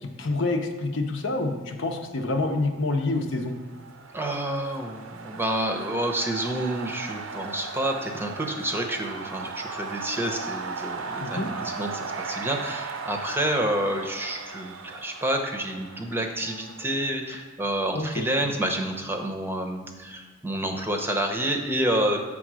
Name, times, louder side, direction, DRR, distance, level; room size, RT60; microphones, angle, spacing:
voice 1, 0.0-3.5 11.2-11.5 17.9-18.2, left 2 dB, 65° left, 4 dB, 0.8 m, -27 dB
sound 1, 3.3-17.1, right 4 dB, 70° right, 0.6 m, -37 dB
voice 2, 4.1-22.2, right 1 dB, 10° right, 3 dB, 0.7 m, -29 dB
7.7 x 3.7 x 6.2 m, 1.4 s
head